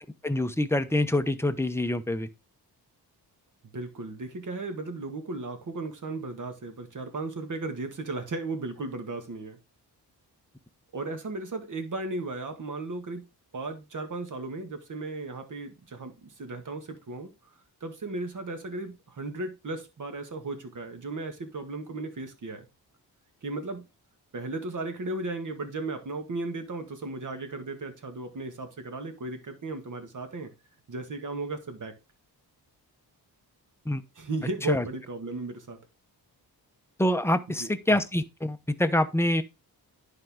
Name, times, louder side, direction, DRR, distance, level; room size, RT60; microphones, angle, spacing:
voice 1, 0.2-2.3 33.9-34.0 34.7-34.8 37.0-39.4, left 1 dB, 5° left, 0.8 m, -25 dB
voice 2, 3.7-9.6 10.9-13.3 13.5-17.3 17.8-22.7 23.4-23.8 24.3-30.5 30.9-31.9 34.2-35.8 37.5-37.7, right 3 dB, 50° right, 1.9 m, -35 dB
10.5 x 4.6 x 3.7 m
cardioid pair, 95°, 40 cm